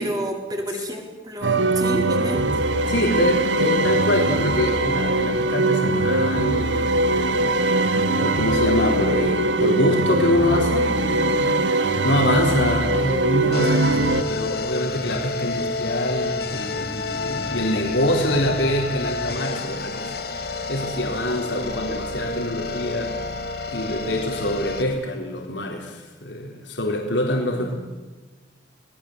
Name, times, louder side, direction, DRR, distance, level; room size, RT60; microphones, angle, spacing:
voice 1, 0.0-2.4 21.6-21.9 27.5-27.7, equal, 20° right, 3 dB, 4.1 m, -30 dB
sound 1, 1.4-14.2, right 2 dB, 80° right, 1.5 m, -21 dB
voice 2, 2.9-7.5 8.2-11.7 12.0-20.4 20.7-27.7, left 1 dB, 75° left, 1 dB, 4.1 m, -25 dB
sound 2, 13.5-24.8, left 3 dB, 55° left, 2.3 m, -29 dB
28.0 x 19.5 x 8.1 m, 1.2 s
head